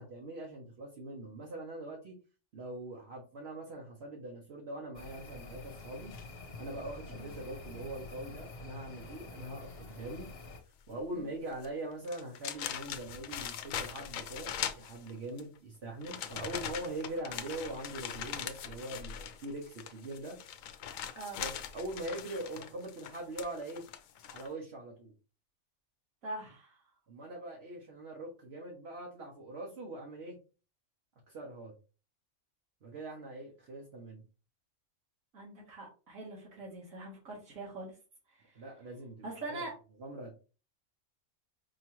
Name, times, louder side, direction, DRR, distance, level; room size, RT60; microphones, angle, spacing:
voice 1, 0.0-2.1 2.5-6.1 6.6-10.3 10.9-20.4 21.4-23.8 24.3-25.1 27.1-30.4 31.3-31.7 32.8-34.2 38.5-39.6 40.0-40.3, right 1 dB, 55° right, 0 dB, 1.0 m, -42 dB
sound 1, 4.9-10.6, left 3 dB, 50° left, 1.0 m, -47 dB
sound 2, 11.5-11.7 12.0-15.4 16.0-24.5, left 9 dB, 80° left, 1.0 m, -41 dB
voice 2, 26.2-26.8 35.3-38.0 38.3-38.6 39.2-39.7, right 2 dB, 90° right, -4 dB, 1.7 m, -43 dB
4.7 x 3.0 x 3.0 m, 0.35 s
omnidirectional pair, 1.4 m